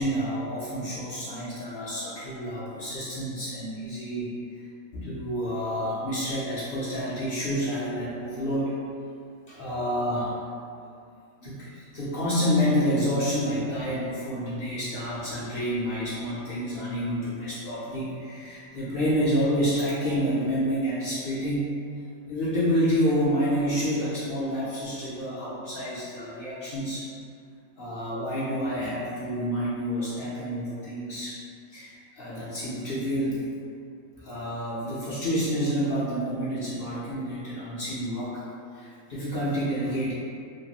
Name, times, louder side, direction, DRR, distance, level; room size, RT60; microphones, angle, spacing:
voice 1, 0.0-4.3 4.9-8.8 9.5-10.5 10.8-10.9 11.4-21.7 22.3-27.1 27.8-31.3 31.7-33.5 34.2-38.5 38.7-40.1, equal, 60° left, -9 dB, 0.6 m, -28 dB
2.8 x 2.2 x 2.7 m, 2.4 s
omnidirectional pair, 1.4 m